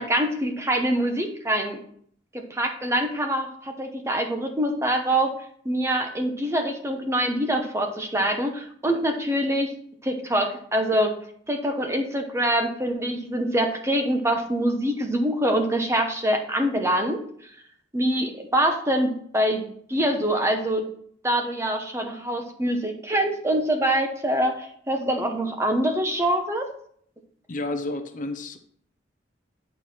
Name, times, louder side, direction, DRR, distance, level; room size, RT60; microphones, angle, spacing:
voice 1, 0.0-1.8 2.3-5.3 5.6-9.7 10.0-11.1 11.5-17.2 17.9-20.9 21.2-26.7, right 1 dB, 15° right, 4 dB, 0.8 m, -25 dB
voice 2, 27.5-28.6, left 2 dB, 45° left, 7 dB, 0.6 m, -30 dB
8.9 x 4.5 x 4.3 m, 0.62 s
head